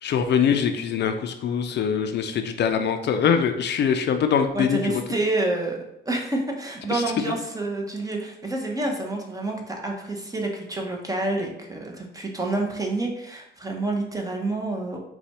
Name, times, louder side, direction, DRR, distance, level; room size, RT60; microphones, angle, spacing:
voice 1, 0.0-5.0 6.9-7.0, left 7 dB, 60° left, 7 dB, 0.4 m, -23 dB
voice 2, 4.5-5.8 6.1-15.0, right 2 dB, 20° right, 0 dB, 0.9 m, -28 dB
4.2 x 2.3 x 4.1 m, 0.81 s
cardioid pair, 90°, 20 cm